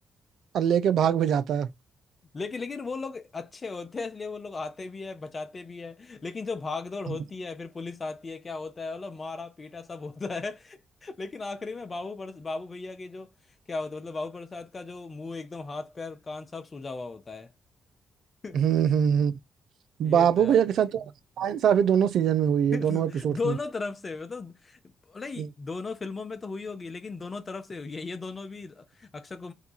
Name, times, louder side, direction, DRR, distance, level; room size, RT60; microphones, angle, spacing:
voice 1, 0.5-1.7 18.5-19.3 20.0-21.0 21.4-23.4, right 8 dB, 70° right, 0.4 m, -23 dB
voice 2, 2.3-13.3 13.7-17.5 18.4-18.6 20.0-20.7 22.7-29.5, left 4 dB, 40° left, 0.6 m, -36 dB
2.8 x 2.3 x 4.0 m
hypercardioid pair, 50°, 0 cm